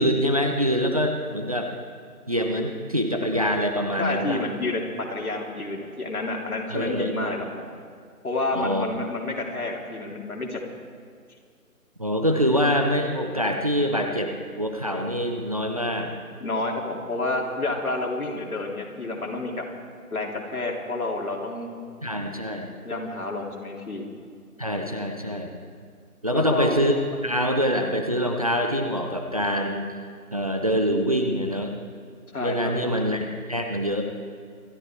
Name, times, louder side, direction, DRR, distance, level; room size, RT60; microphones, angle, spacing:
voice 1, 0.0-1.7 2.3-4.4 6.7-7.3 8.5-8.9 12.0-16.2 22.0-22.7 24.6-25.5 26.2-26.9 27.2-29.9 30.3-31.7 32.4-34.0, equal, 25° right, 3 dB, 0.7 m, -25 dB
voice 2, 4.0-7.7 8.2-10.6 16.4-19.6 20.1-21.7 22.8-24.0 26.3-26.8 32.3-32.7, left 2 dB, 70° left, 0 dB, 3.3 m, -29 dB
26.5 x 12.0 x 4.5 m, 2.2 s
figure-of-eight pair, 160°, 45 cm